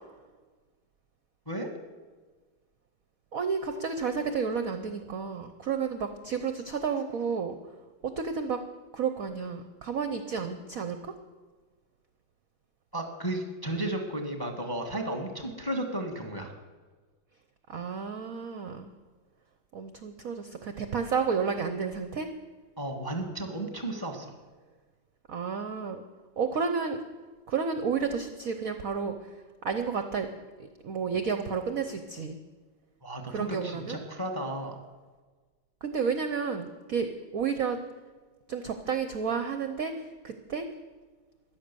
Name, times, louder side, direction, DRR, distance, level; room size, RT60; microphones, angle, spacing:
voice 1, 3.3-7.6 8.0-8.6 8.9-11.1 17.7-18.9 19.7-22.3 25.3-26.0 26.4-27.0 27.5-30.3 30.6-32.4 33.3-34.0 35.8-37.1 37.3-37.8 38.5-40.7, right 6 dB, 60° right, 8 dB, 0.9 m, -31 dB
voice 2, 12.9-16.6 22.8-24.4 33.0-34.8, right 1 dB, 15° left, 4 dB, 1.1 m, -34 dB
14.5 x 10.5 x 6.8 m, 1.4 s
omnidirectional pair, 2.4 m